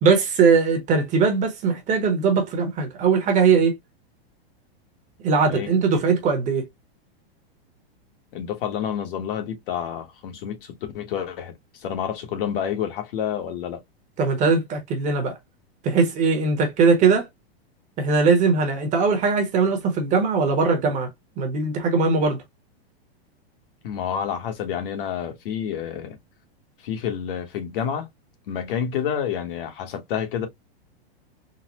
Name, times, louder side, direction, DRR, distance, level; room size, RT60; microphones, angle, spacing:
voice 1, 0.0-3.7 5.2-6.6 14.2-15.3 15.8-17.3 18.0-21.1 21.4-22.4, right 4 dB, 25° right, 0.9 m, -20 dB
voice 2, 8.3-13.8 23.8-26.2 26.8-28.1 28.5-30.5, left 8 dB, 60° left, 1.1 m, -29 dB
3.9 x 2.0 x 2.9 m
supercardioid pair, 150°, 32 cm